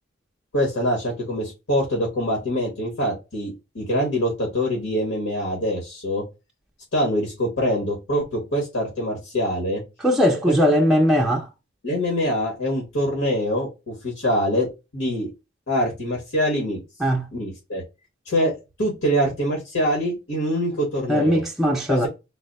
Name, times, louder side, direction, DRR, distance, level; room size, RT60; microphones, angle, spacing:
voice 1, 0.5-6.2 6.9-9.8 10.5-10.6 11.8-14.7 14.9-15.3 15.7-16.8 17.3-17.8 18.2-21.4 21.9-22.1, equal, 90° left, 1.4 m, -24 dB
voice 2, 10.0-11.5 17.0-17.2 21.1-22.1, equal, ahead, 0.4 m, -19 dB
4.0 x 2.1 x 4.0 m
head